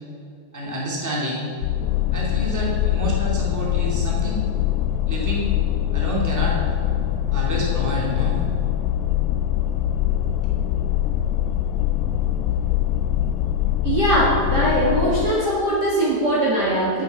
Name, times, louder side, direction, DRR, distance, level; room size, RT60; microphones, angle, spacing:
voice 1, 0.5-1.5 2.1-4.4 5.1-5.5 5.9-6.6 7.3-8.4, right 1 dB, 5° right, -4 dB, 2.0 m, -28 dB
sound 1, 1.6-15.3, left 12 dB, 90° left, 2.0 m, -23 dB
voice 2, 13.8-17.0, right 1 dB, 40° right, -6 dB, 1.9 m, -20 dB
9.3 x 7.3 x 8.3 m, 2.6 s
omnidirectional pair, 3.3 m